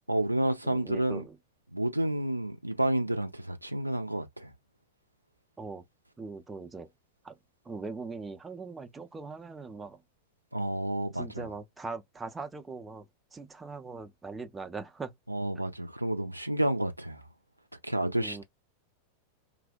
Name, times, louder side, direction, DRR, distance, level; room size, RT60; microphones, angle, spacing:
voice 1, 0.1-1.2 1.7-4.5 10.5-11.5 15.3-17.2 17.8-18.4, right 1 dB, 85° right, 0.3 m, -30 dB
voice 2, 0.6-1.4 5.6-5.8 6.2-6.9 7.2-7.3 7.6-10.0 11.1-13.1 13.3-15.1 18.2-18.4, right 3 dB, 10° right, 0.4 m, -40 dB
2.6 x 2.0 x 2.3 m
figure-of-eight pair, 90°, 0 cm